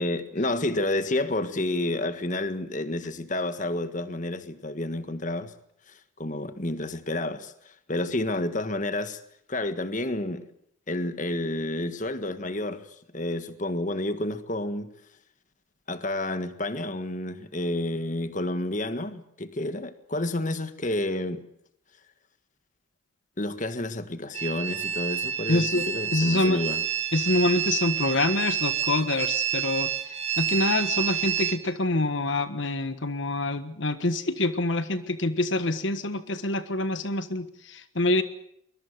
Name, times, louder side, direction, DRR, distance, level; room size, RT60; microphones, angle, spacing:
voice 1, 0.0-5.5 5.9-9.2 9.5-10.4 10.9-14.9 15.9-21.4 23.4-26.8, left 1 dB, 40° left, 1.6 m, -30 dB
sound 1, 24.3-31.6, right 10 dB, 30° right, 2.3 m, -29 dB
voice 2, 25.5-25.9 26.1-26.6 27.1-38.2, left 2 dB, 65° left, 1.5 m, -26 dB
23.0 x 22.0 x 7.9 m
head